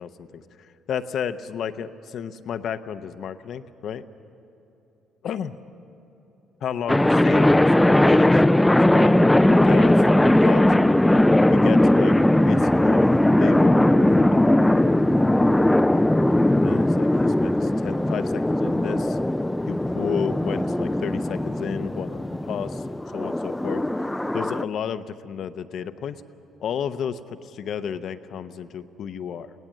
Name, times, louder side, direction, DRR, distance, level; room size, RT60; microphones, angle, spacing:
voice 1, 0.0-4.0 5.2-5.6 6.6-8.4 8.9-10.6 11.5-12.2 12.4-13.0 13.4-14.9 16.6-19.2 19.7-22.8 23.1-26.2 26.6-29.5, left 8 dB, 60° left, 12 dB, 0.7 m, -32 dB
sound 1, 6.9-24.6, left 1 dB, 10° left, 0.4 m, -19 dB
21.5 x 17.5 x 7.4 m, 3.0 s
hypercardioid pair, 55°, 0 cm